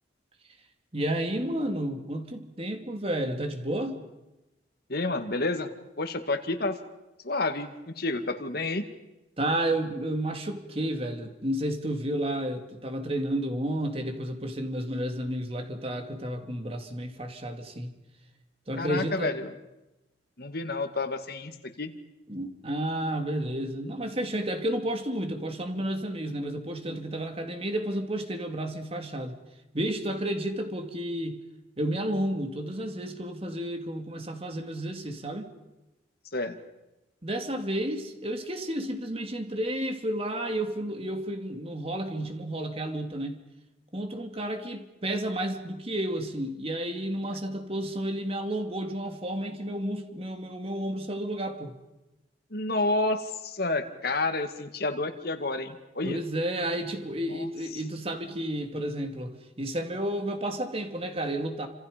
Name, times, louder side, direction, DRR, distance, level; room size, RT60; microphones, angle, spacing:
voice 1, 0.9-4.0 9.4-18.0 18.7-19.3 22.3-29.4 29.7-31.4 31.8-35.5 37.2-43.4 43.9-51.7 56.0-61.7, right 1 dB, 30° right, 5 dB, 2.7 m, -31 dB
voice 2, 4.9-5.7 6.0-6.8 7.2-8.8 18.8-19.5 20.4-21.9 36.3-36.6 52.5-56.2 57.3-57.8, left 2 dB, 55° left, 6 dB, 2.2 m, -30 dB
30.0 x 27.0 x 5.3 m, 1.0 s
head